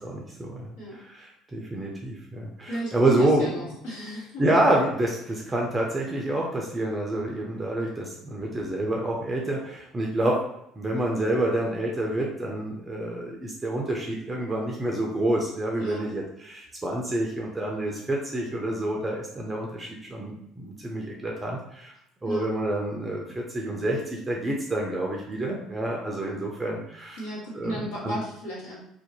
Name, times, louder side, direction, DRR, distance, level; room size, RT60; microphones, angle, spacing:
voice 1, 0.0-3.7 4.4-10.4 10.8-21.9 22.2-27.2 27.5-28.2, right 1 dB, 20° right, -1 dB, 0.5 m, -28 dB
voice 2, 2.7-4.4 15.8-16.1 22.2-22.5 27.2-28.8, equal, 70° left, -8 dB, 1.2 m, -34 dB
2.6 x 2.1 x 2.8 m, 0.79 s
figure-of-eight pair, 55°, 0 cm